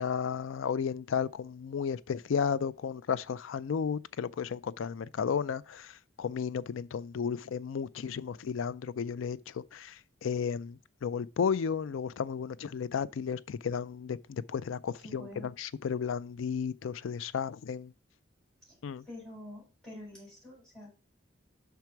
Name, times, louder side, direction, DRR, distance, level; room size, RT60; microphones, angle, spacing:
voice 1, 0.0-17.9 18.8-19.0, left 6 dB, 80° left, 0.4 m, -33 dB
voice 2, 15.0-15.5 18.7-18.8 19.0-20.9, left 1 dB, 5° left, 4.5 m, -47 dB
5.9 x 4.6 x 5.7 m
head